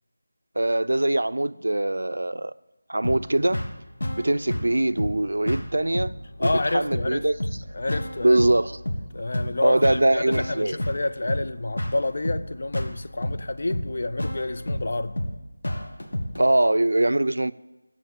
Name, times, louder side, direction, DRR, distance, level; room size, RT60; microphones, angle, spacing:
voice 1, 0.6-2.5 2.9-3.6 4.2-6.1 6.4-7.4 8.2-8.8 9.6-10.8 16.4-17.5, right 1 dB, 85° right, 0.3 m, -22 dB
sound 1, 3.0-16.4, left 1 dB, 65° left, 1.4 m, -31 dB
voice 2, 6.4-7.3 7.7-8.4 9.1-15.2, left 2 dB, 40° left, 0.4 m, -28 dB
7.4 x 7.1 x 7.9 m
figure-of-eight pair, 180°, 0 cm